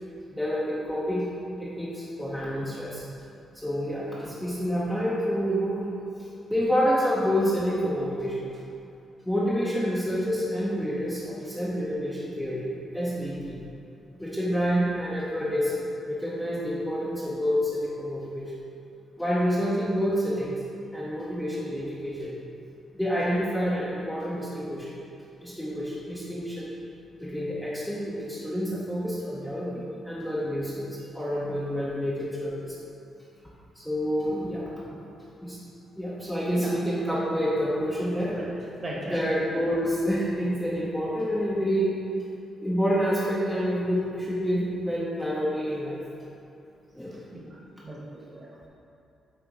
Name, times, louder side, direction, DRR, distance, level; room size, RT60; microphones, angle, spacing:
voice 1, 0.3-1.3 1.6-3.0 3.5-5.9 6.5-8.4 9.2-13.6 14.2-18.5 19.2-20.5 20.9-22.3 22.9-25.0 25.4-26.7 27.2-32.8 33.8-35.0 35.4-35.6 36.0-38.4 39.1-42.0 42.6-46.0 46.9-47.2, equal, ahead, -7 dB, 0.7 m, -28 dB
voice 2, 38.8-39.2 47.1-47.6 47.8-48.7, right 1 dB, 25° right, -4 dB, 1.2 m, -39 dB
7.8 x 3.4 x 4.7 m, 2.7 s
cardioid pair, 160°, 0 cm